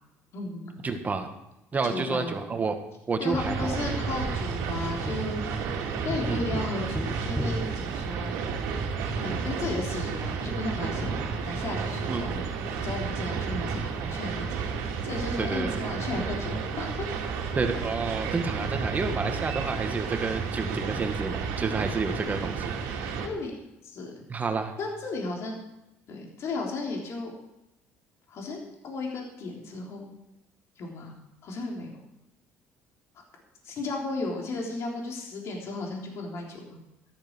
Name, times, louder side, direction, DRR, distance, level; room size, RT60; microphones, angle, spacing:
voice 1, 0.3-0.7 1.8-2.3 3.2-5.4 6.0-8.4 9.2-11.1 11.4-12.4 12.8-14.6 15.0-17.3 23.2-23.5 23.8-24.1 24.8-25.6 26.1-27.3 28.3-30.1 30.8-31.1 31.4-31.9 33.6-36.8, left 3 dB, 60° left, 0 dB, 3.6 m, -34 dB
voice 2, 0.8-1.3 1.7-2.7 3.1-4.0 6.3-6.4 12.1-12.2 15.4-15.8 17.6-23.2 24.3-24.7, right 4 dB, 30° right, 6 dB, 2.0 m, -30 dB
Tap, 3.3-8.6 11.2-11.3, right 1 dB, 5° right, 1.3 m, -37 dB
sound 1, 3.4-23.3, right 5 dB, 85° right, 2.5 m, -32 dB
14.0 x 12.5 x 4.7 m, 0.90 s
supercardioid pair, 90°, 5 cm